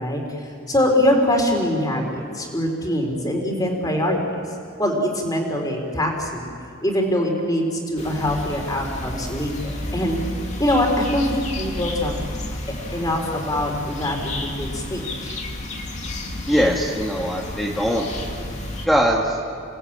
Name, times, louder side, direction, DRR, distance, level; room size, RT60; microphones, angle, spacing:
voice 1, 0.0-4.4 4.8-6.5 6.8-10.2 10.6-12.1 12.9-15.3, left 1 dB, 20° left, 1 dB, 4.0 m, -23 dB
sound 1, 8.0-18.9, left 1 dB, 35° left, 2.4 m, -31 dB
voice 2, 16.5-18.1 18.8-19.4, equal, ahead, -2 dB, 1.7 m, -21 dB
29.0 x 19.0 x 8.8 m, 2.4 s
head